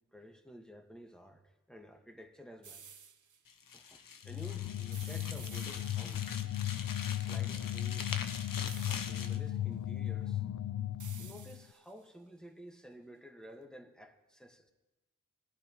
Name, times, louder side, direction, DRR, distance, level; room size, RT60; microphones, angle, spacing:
voice 1, 0.0-1.4 1.7-2.8 3.7-6.4 7.1-8.3 8.9-10.4 10.7-10.9 11.2-14.7, equal, ahead, 3 dB, 1.5 m, -52 dB
sound 1, 2.6-3.4 4.9-6.3 8.7-9.5 11.0-12.0, right 6 dB, 65° right, 0.8 m, -53 dB
sound 2, 3.5-9.4, left 6 dB, 85° left, 0.9 m, -44 dB
sound 3, 4.2-11.6, left 12 dB, 65° left, 0.5 m, -36 dB
21.0 x 13.0 x 3.1 m, 1.1 s
cardioid pair, 50°, 33 cm